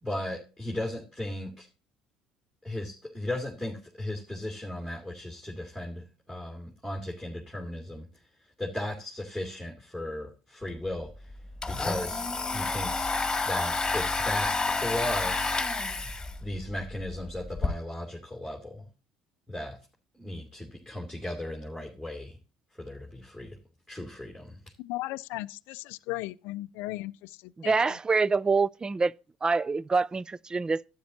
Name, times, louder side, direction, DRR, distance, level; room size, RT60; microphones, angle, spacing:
voice 1, 0.0-1.7 2.6-8.1 8.6-11.3 11.7-12.2 12.5-13.1 13.4-15.6 16.4-18.8 19.5-19.8 20.2-22.4 22.8-23.6 23.9-24.6, left 1 dB, 5° right, 2.5 m, -36 dB
Domestic sounds home sounds, 10.7-10.8 11.1-17.7, left 3 dB, 15° left, 1.9 m, -30 dB
voice 2, 24.8-27.7, left 19 dB, 70° left, 0.4 m, -36 dB
voice 3, 27.6-29.1 29.4-30.9, right 4 dB, 20° right, 0.4 m, -26 dB
12.0 x 9.4 x 2.7 m
hypercardioid pair, 65°, 4 cm